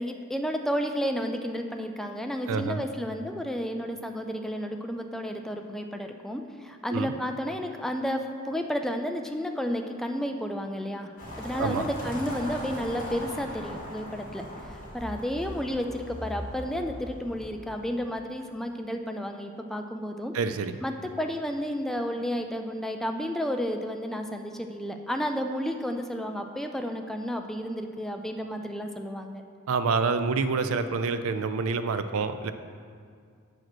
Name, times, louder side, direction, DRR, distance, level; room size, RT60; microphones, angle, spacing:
voice 1, 0.0-20.3 20.8-29.4, equal, ahead, 4 dB, 0.3 m, -32 dB
voice 2, 2.5-2.8 6.9-7.1 11.6-11.9 20.3-20.8 29.7-32.5, right 4 dB, 80° right, 10 dB, 0.4 m, -27 dB
sound 1, 11.2-18.1, equal, 40° left, 2.0 m, -39 dB
7.4 x 5.0 x 6.1 m, 2.2 s
head